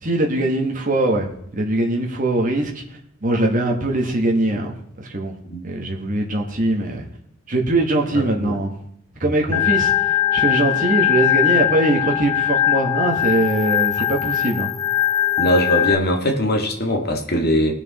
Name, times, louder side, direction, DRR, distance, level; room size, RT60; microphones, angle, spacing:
voice 1, 0.0-5.4 5.6-7.1 7.5-8.7 9.2-14.7, right 2 dB, 35° right, 1 dB, 1.5 m, -22 dB
voice 2, 8.1-8.5 9.5-9.6 15.4-17.7, equal, 45° left, 3 dB, 2.0 m, -21 dB
Organ, 9.5-15.9, left 12 dB, 15° left, 0.8 m, -20 dB
20.0 x 6.8 x 4.1 m, 0.73 s
head